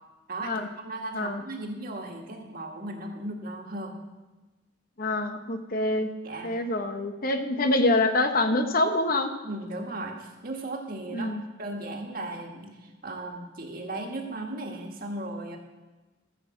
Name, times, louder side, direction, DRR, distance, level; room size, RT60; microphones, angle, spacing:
voice 1, 0.3-3.9 6.2-6.5 9.4-11.3 11.6-15.6, right 2 dB, 50° right, 1 dB, 1.7 m, -36 dB
voice 2, 5.0-6.1 6.4-9.3 11.1-11.4, left 2 dB, 45° left, 7 dB, 0.9 m, -25 dB
14.0 x 5.7 x 7.3 m, 1.2 s
head